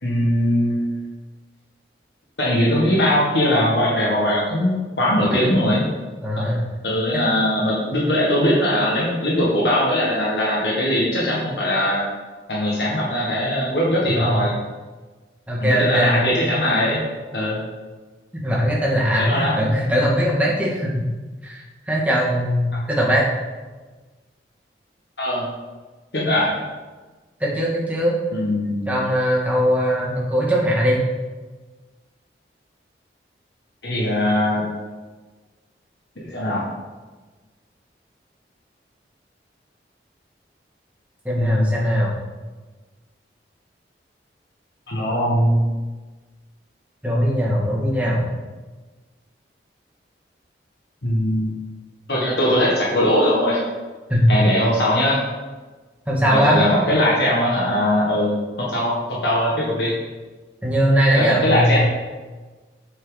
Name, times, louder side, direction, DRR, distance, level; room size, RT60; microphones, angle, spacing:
voice 1, 0.0-0.9 2.4-5.9 6.8-12.0 12.5-14.5 15.6-17.0 17.3-17.6 19.2-19.6 25.2-25.4 26.1-26.6 28.3-28.9 33.8-34.6 36.3-36.6 41.4-41.8 44.9-45.7 51.0-51.6 52.1-53.6 54.3-55.2 56.3-59.9 61.1-61.8, left 1 dB, 70° left, -5 dB, 1.6 m, -20 dB
voice 2, 5.2-5.6 6.2-6.6 7.2-7.3 15.5-16.2 18.4-21.0 21.4-23.2 27.4-28.2 28.9-31.0 41.3-42.1 47.0-48.3 54.1-54.4 56.1-56.6 60.6-61.8, equal, 10° right, -5 dB, 1.8 m, -20 dB
8.8 x 6.1 x 3.9 m, 1.3 s
head